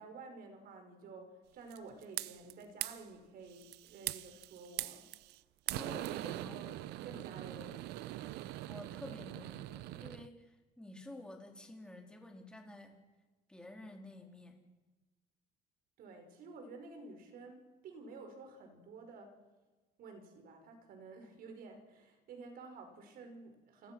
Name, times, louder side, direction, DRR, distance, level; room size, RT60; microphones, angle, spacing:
voice 1, 0.0-5.1 5.7-6.0 6.3-8.2 16.0-19.4 20.0-23.9, right 3 dB, 60° right, 6 dB, 5.3 m, -52 dB
sound 1, 1.7-2.5 2.8-3.0 3.5-5.4 5.7-10.3, right 16 dB, 85° right, 0.7 m, -42 dB
voice 2, 5.7-6.6 8.7-13.0 13.5-14.6, left 1 dB, 5° left, 2 dB, 3.7 m, -50 dB
29.0 x 22.0 x 6.2 m, 1.2 s
cardioid pair, 130°, 17 cm